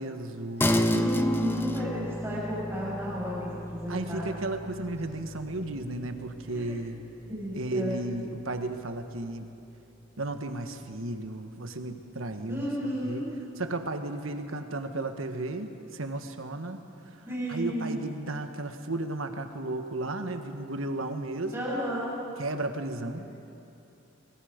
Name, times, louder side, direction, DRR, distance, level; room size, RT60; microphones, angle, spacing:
voice 1, 0.0-0.7 3.9-7.0 7.5-9.5 10.2-13.2 13.6-21.7 22.4-23.2, right 2 dB, 80° right, 7 dB, 1.4 m, -34 dB
sound 1, 0.6-10.3, left 1 dB, 10° left, 0.6 m, -33 dB
voice 2, 0.9-4.3 6.5-6.6 7.3-8.0 12.5-13.3 17.2-18.0 21.5-22.2 23.2-23.3, equal, 10° right, -6 dB, 6.5 m, -32 dB
25.0 x 21.0 x 5.2 m, 2.8 s
head